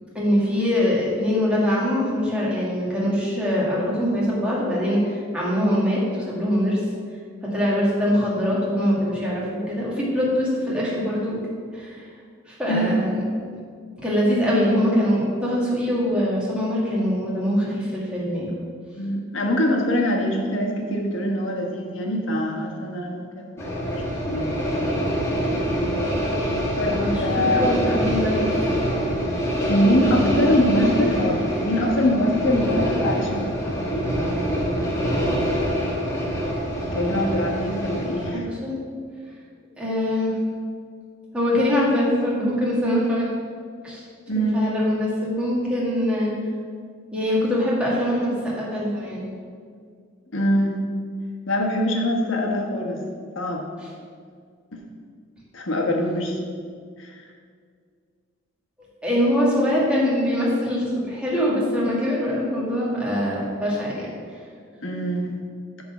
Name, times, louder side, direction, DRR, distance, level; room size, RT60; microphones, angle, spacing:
voice 1, 0.1-6.8 7.4-11.4 11.7-12.1 12.5-13.1 14.0-18.5 26.8-28.8 38.3-38.8 39.8-40.4 41.3-43.3 43.8-44.0 44.5-46.3 47.1-49.2 59.0-64.1, equal, 5° right, -6 dB, 1.9 m, -23 dB
voice 2, 18.9-24.6 26.8-28.0 29.7-34.1 36.9-38.5 44.3-44.6 50.3-50.8 51.5-53.0 53.3-53.6 54.7-54.8 55.5-56.4 57.0-57.2 64.8-65.3, equal, 70° left, 0 dB, 1.3 m, -23 dB
sound 1, 23.6-38.3, equal, 15° left, 1.3 m, -25 dB
9.4 x 3.9 x 7.2 m, 2.1 s
head